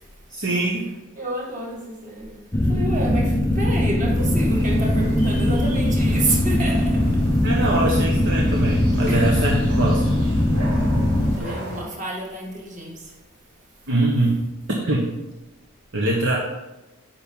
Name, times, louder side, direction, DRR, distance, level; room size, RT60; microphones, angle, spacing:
voice 1, 0.3-0.9 7.4-10.1 11.4-11.6 13.9-15.1 15.9-16.4, right 1 dB, 55° right, -2 dB, 1.0 m, -23 dB
voice 2, 1.1-2.4 2.6-7.2 9.1-9.3 11.3-13.1, right 1 dB, 35° right, -2 dB, 1.8 m, -29 dB
sound 1, 2.5-11.4, left 1 dB, 15° left, 0.5 m, -20 dB
sound 2, 4.1-11.8, equal, 85° right, 2.6 m, -34 dB
9.0 x 5.7 x 3.7 m, 1.1 s
head